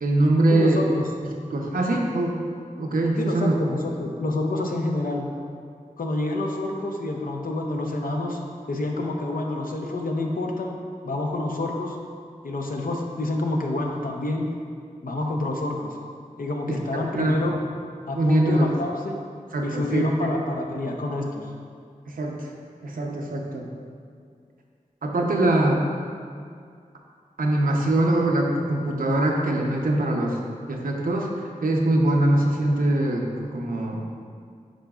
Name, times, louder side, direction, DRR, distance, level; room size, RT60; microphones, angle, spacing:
voice 1, 0.0-0.8 1.2-2.4 2.8-3.5 16.7-17.4 18.2-18.7 19.5-20.3 22.1-22.5 22.8-23.7 25.0-25.8 27.4-30.4 30.7-31.3 31.6-34.0, right 1 dB, 90° right, 0 dB, 0.7 m, -23 dB
voice 2, 0.5-1.1 3.2-5.3 6.0-8.4 8.7-10.8 11.0-12.0 12.4-14.5 15.0-16.0 16.4-17.6 18.1-19.2 19.6-21.5, left 2 dB, 80° left, 0 dB, 0.7 m, -28 dB
10.0 x 3.9 x 2.4 m, 2.2 s
cardioid pair, 45°, 14 cm